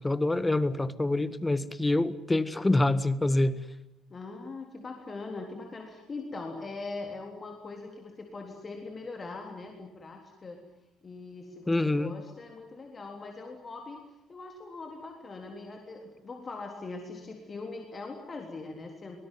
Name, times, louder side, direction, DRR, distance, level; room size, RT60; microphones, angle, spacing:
voice 1, 0.0-3.6 11.7-12.2, left 2 dB, 15° left, 15 dB, 1.6 m, -26 dB
voice 2, 4.1-10.6 11.0-19.2, left 3 dB, 35° left, 2 dB, 3.7 m, -41 dB
24.0 x 20.0 x 9.6 m, 0.85 s
figure-of-eight pair, 50°, 0 cm